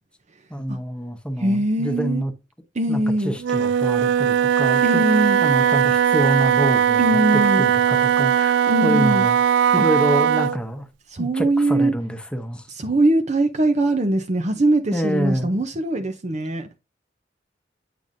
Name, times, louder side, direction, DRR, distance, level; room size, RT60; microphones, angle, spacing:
voice 1, 0.5-2.3 2.9-9.4 9.7-10.9 11.2-12.7 14.9-15.5, equal, 5° left, 1.0 m, -26 dB
voice 2, 1.4-2.2 2.8-3.4 4.8-5.4 7.0-7.7 8.7-9.2 11.1-11.9 12.8-16.7, right 1 dB, 40° right, 0.7 m, -21 dB
Wind instrument woodwind instrument, 3.4-10.6, right 8 dB, 90° right, 0.3 m, -19 dB
9.1 x 4.9 x 2.6 m
head